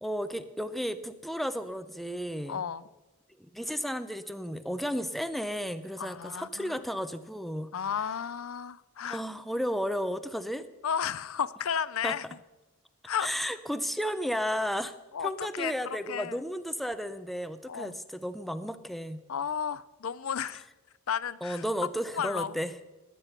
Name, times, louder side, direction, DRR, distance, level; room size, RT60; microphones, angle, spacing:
voice 1, 0.0-2.6 3.4-7.7 9.0-10.7 12.0-12.2 13.2-19.2 21.4-22.7, equal, ahead, 11 dB, 0.6 m, -33 dB
voice 2, 2.5-2.8 6.0-6.8 7.7-9.2 10.8-12.2 13.1-13.3 15.1-16.4 17.7-18.0 19.3-20.7 21.1-21.6 22.1-22.6, left 7 dB, 75° left, 18 dB, 0.5 m, -33 dB
19.5 x 8.5 x 5.9 m, 1.1 s
head